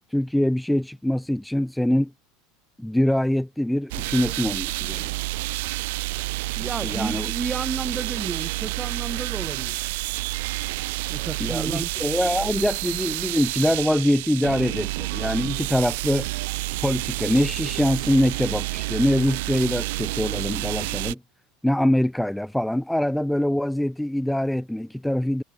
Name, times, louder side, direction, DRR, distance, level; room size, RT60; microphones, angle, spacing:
voice 1, 0.1-2.1 2.8-5.1 6.8-7.3 11.4-16.3 16.8-21.2 21.6-25.4, left 1 dB, ahead, 3.0 m, -24 dB
sound 1, 3.9-21.1, right 22 dB, 70° right, 6.2 m, -29 dB
voice 2, 6.6-9.8 11.1-12.2, right 5 dB, 15° right, 4.2 m, -32 dB
supercardioid pair, 155°, 0 cm